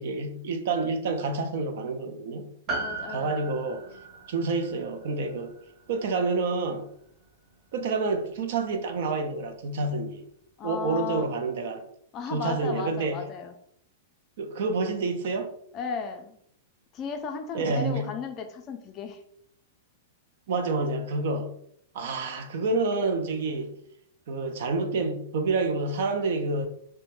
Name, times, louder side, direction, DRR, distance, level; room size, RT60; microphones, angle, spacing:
voice 1, 0.0-2.5 3.1-3.8 4.3-5.5 5.9-6.9 7.7-10.2 10.6-11.9 12.3-13.2 14.4-15.5 17.5-18.1 20.5-21.5 21.9-23.7 24.3-26.7, right 3 dB, 65° right, 0.4 m, -28 dB
Piano, 2.7-7.3 7.5-7.6, right 3 dB, 30° right, 0.8 m, -38 dB
voice 2, 2.8-3.5 10.6-11.3 12.1-13.5 15.7-16.4 16.9-19.2, left 5 dB, 30° left, 0.4 m, -35 dB
2.1 x 2.1 x 3.0 m
hypercardioid pair, 140°, 0 cm